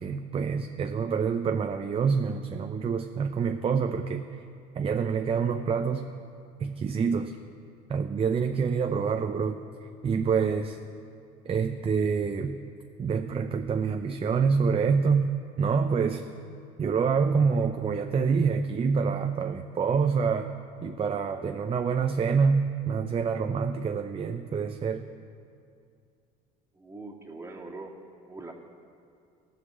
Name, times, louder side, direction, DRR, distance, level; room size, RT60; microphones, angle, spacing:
voice 1, 0.0-4.3 4.8-6.1 6.6-7.3 7.9-9.6 10.0-10.8 11.5-12.6 13.0-15.3 15.6-16.3 16.8-20.5 20.8-25.0, right 5 dB, 30° right, 6 dB, 0.6 m, -26 dB
voice 2, 26.7-27.9 28.3-28.5, right 3 dB, 15° right, -1 dB, 2.1 m, -42 dB
16.0 x 5.8 x 7.4 m, 2.4 s
supercardioid pair, 90°, 20 cm